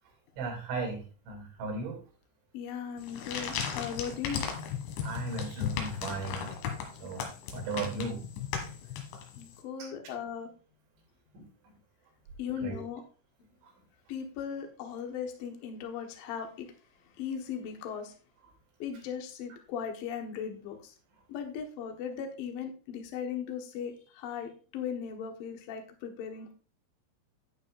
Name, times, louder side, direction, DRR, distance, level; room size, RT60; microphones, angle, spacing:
voice 1, 0.4-2.0 5.0-6.6 7.0-7.3 7.5-8.2 9.8-9.9 11.3-11.5 12.6-12.8, right 3 dB, 80° right, 1 dB, 5.4 m, -36 dB
voice 2, 2.5-4.4 9.4-10.5 12.4-13.0 14.1-16.7 17.2-18.1 18.8-20.9 21.3-26.5, left 7 dB, 60° left, 4 dB, 2.7 m, -38 dB
sound 1, 3.0-9.5, left 8 dB, 90° left, 3.9 m, -36 dB
11.5 x 9.3 x 2.5 m, 0.36 s
omnidirectional pair, 5.2 m